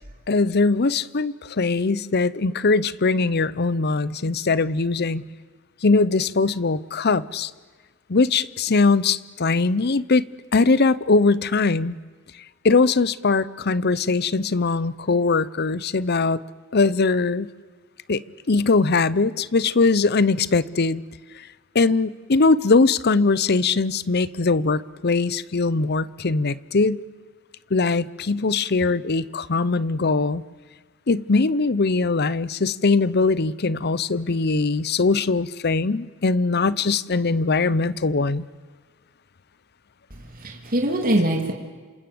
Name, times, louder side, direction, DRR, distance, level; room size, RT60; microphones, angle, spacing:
voice 1, 0.3-5.3 5.8-7.5 8.1-10.3 10.5-11.9 12.6-16.4 16.7-17.5 18.1-21.0 21.3-21.5 21.7-27.0 27.7-30.4 31.1-38.5, left 3 dB, 50° left, 19 dB, 0.8 m, -21 dB
voice 2, 40.1-41.5, right 1 dB, 45° right, 2 dB, 3.1 m, -23 dB
27.5 x 27.0 x 7.9 m, 1.4 s
head